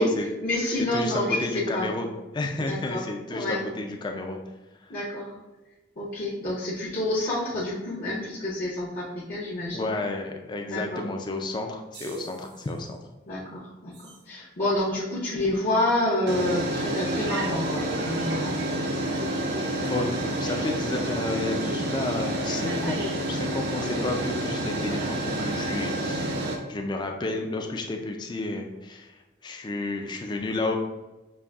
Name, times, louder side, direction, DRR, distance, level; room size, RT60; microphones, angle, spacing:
voice 1, 0.4-1.9 2.6-3.0 3.3-3.6 4.9-5.3 6.0-9.9 10.7-11.0 13.3-18.6 23.7-24.2, left 1 dB, 45° left, -8 dB, 0.7 m, -28 dB
voice 2, 0.9-2.1 2.3-4.4 4.8-4.9 9.7-13.0 19.8-20.1 20.4-23.0 23.3-26.3 26.7-30.8, left 2 dB, 25° left, 3 dB, 0.3 m, -31 dB
sound 1, 11.9-12.4 14.1-14.2 16.3-26.6, right 1 dB, 65° right, 0.5 m, -29 dB
5.3 x 2.5 x 2.4 m, 1.1 s
head